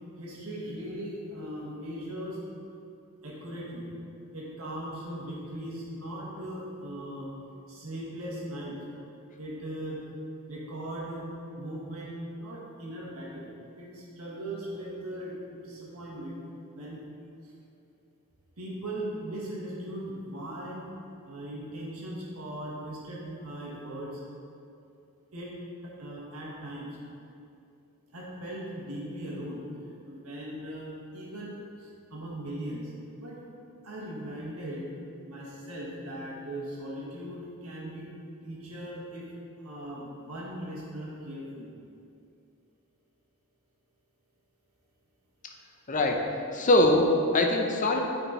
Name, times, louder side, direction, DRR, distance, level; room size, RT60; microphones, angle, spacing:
voice 1, 0.2-2.4 3.2-3.9 4.3-7.3 7.7-8.8 9.4-10.0 10.5-11.3 11.5-15.4 15.6-16.4 16.7-17.0 17.4-17.5 18.6-20.8 21.3-24.2 25.3-25.5 25.8-27.0 28.1-29.6 30.0-32.8 33.2-33.4 33.8-34.9 35.2-38.1 38.4-39.3 39.6-41.7, right 1 dB, 85° right, -4 dB, 1.7 m, -39 dB
voice 2, 45.9-48.0, left 1 dB, 35° left, 3 dB, 0.6 m, -23 dB
8.8 x 4.4 x 4.3 m, 2.6 s
head